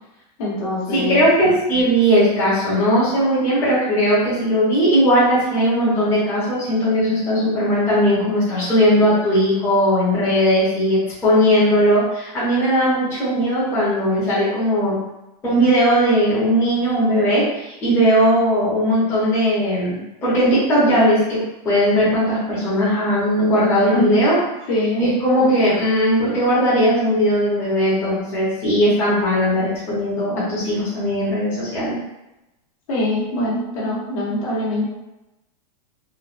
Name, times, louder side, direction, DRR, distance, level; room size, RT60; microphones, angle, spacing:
voice 1, 0.4-1.3 23.9-24.3 24.7-25.1 32.9-34.8, left 1 dB, 55° left, -4 dB, 1.0 m, -23 dB
voice 2, 0.9-15.0 15.4-24.4 25.0-32.0, equal, 10° left, -10 dB, 0.7 m, -18 dB
3.0 x 2.3 x 2.4 m, 0.94 s
supercardioid pair, 175°, 21 cm